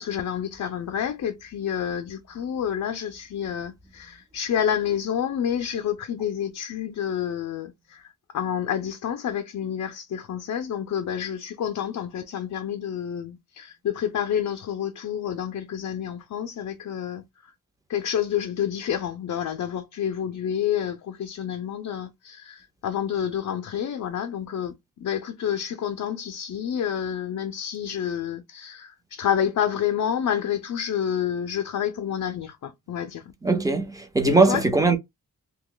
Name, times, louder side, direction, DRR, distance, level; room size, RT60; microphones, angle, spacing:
voice 1, 0.0-17.5 17.9-33.3 34.2-34.6, left 9 dB, 60° left, 0.5 m, -29 dB
voice 2, 33.4-35.0, right 3 dB, 10° right, 0.6 m, -20 dB
2.9 x 2.2 x 3.7 m
wide cardioid pair, 135°, 35 cm